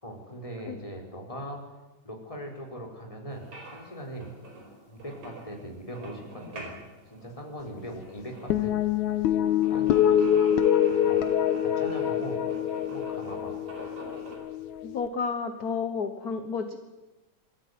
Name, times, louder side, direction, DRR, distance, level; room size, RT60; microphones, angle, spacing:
voice 1, 0.0-1.6 2.0-4.3 4.9-6.8 7.1-8.8 9.1-10.4 10.9-11.2 11.6-12.4 12.9-13.5, equal, 10° left, 1 dB, 3.9 m, -40 dB
sound 1, 3.3-14.4, right 2 dB, 85° right, 6.0 m, -46 dB
sound 2, 8.5-15.1, left 9 dB, 85° left, 2.4 m, -25 dB
voice 2, 14.8-16.8, left 5 dB, 50° left, 7 dB, 1.2 m, -31 dB
23.5 x 14.0 x 9.4 m, 1.1 s
omnidirectional pair, 3.3 m